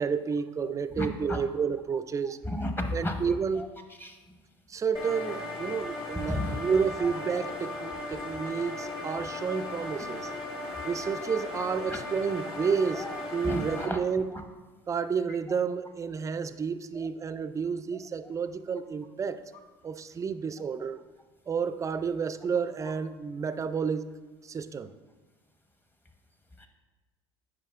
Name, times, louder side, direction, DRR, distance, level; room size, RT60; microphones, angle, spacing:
voice 1, 0.0-2.4 2.9-3.7 4.7-10.3 10.8-14.4 14.9-19.4 19.8-21.0 21.5-24.1 24.4-24.9, right 6 dB, 25° right, 12 dB, 0.4 m, -30 dB
voice 2, 2.5-3.2 4.0-4.1 6.3-6.5 13.4-14.0, left 1 dB, 15° left, 5 dB, 0.9 m, -31 dB
sound 1, 4.9-13.9, left 2 dB, 40° left, 1.7 m, -37 dB
9.3 x 4.9 x 2.5 m, 1.3 s
hypercardioid pair, 70°, 13 cm